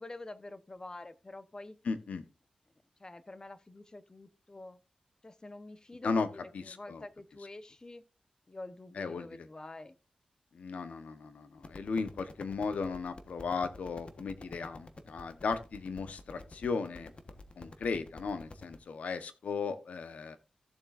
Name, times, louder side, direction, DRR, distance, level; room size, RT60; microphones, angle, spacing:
voice 1, 0.0-1.8 3.0-4.8 5.2-8.0 8.5-9.9, left 2 dB, 30° left, 1.0 m, -47 dB
voice 2, 1.8-2.2 6.0-6.3 6.5-7.0 8.9-9.5 10.5-17.1 17.6-20.4, left 4 dB, 85° left, 1.0 m, -36 dB
sound 1, 11.6-18.8, left 2 dB, 50° left, 1.2 m, -50 dB
15.5 x 7.4 x 2.5 m
cardioid pair, 55°, 2 cm